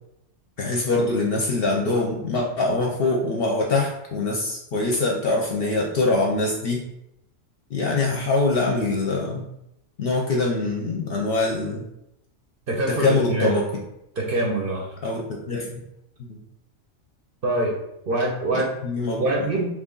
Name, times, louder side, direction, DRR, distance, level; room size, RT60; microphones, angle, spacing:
voice 1, 0.6-6.8 7.7-9.5 10.0-11.8 12.9-13.7 15.0-15.8 16.3-16.4 18.5-19.2, left 2 dB, 60° left, -1 dB, 0.7 m, -23 dB
voice 2, 12.7-13.5 14.2-14.9 17.4-17.8 18.1-18.7 19.2-19.7, right 2 dB, 55° right, -2 dB, 0.7 m, -24 dB
3.0 x 2.6 x 3.7 m, 0.83 s
omnidirectional pair, 1.4 m